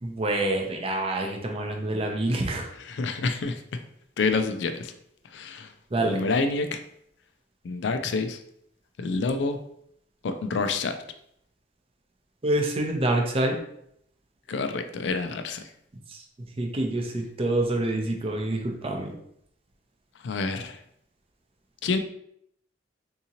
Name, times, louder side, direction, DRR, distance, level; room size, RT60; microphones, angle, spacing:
voice 1, 0.0-2.7 5.9-6.2 12.4-13.6 16.6-19.1, right 1 dB, 30° right, 2 dB, 0.5 m, -26 dB
voice 2, 2.8-3.8 4.2-4.9 5.3-5.7 6.0-6.8 7.6-8.4 9.0-9.6 10.2-11.0 14.5-15.6 20.2-20.8 21.8-22.0, left 4 dB, 75° left, 8 dB, 0.4 m, -28 dB
3.6 x 2.8 x 2.8 m, 0.71 s
head